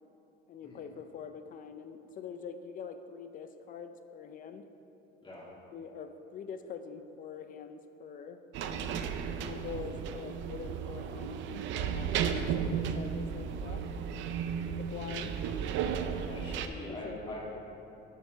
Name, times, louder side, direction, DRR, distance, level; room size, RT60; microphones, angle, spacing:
voice 1, 0.5-4.7 5.7-9.0 9.3-13.8 14.7-15.4 16.8-17.4, left 6 dB, 40° left, 8 dB, 0.5 m, -45 dB
sound 1, 8.5-16.7, right 7 dB, 65° right, 0.5 m, -34 dB
voice 2, 16.3-17.5, left 1 dB, 25° left, -5 dB, 2.2 m, -42 dB
7.3 x 5.6 x 6.6 m, 2.8 s
cardioid pair, 150°, 21 cm